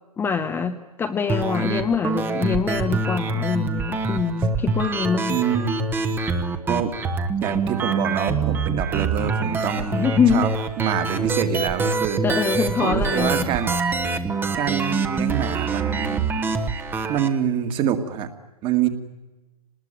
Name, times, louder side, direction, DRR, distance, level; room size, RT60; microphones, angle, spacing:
voice 1, 0.2-5.4 9.8-10.5 12.2-13.5, left 6 dB, 10° left, 6 dB, 0.9 m, -24 dB
sound 1, 1.3-17.3, right 4 dB, 10° right, 1.3 m, -25 dB
voice 2, 5.3-5.9 6.7-6.9 7.4-10.5 10.8-12.2 12.8-13.7 14.5-16.3 16.8-18.3 18.6-18.9, right 9 dB, 25° right, 7 dB, 2.1 m, -25 dB
26.5 x 20.0 x 9.1 m, 1.1 s
hypercardioid pair, 130°, 19 cm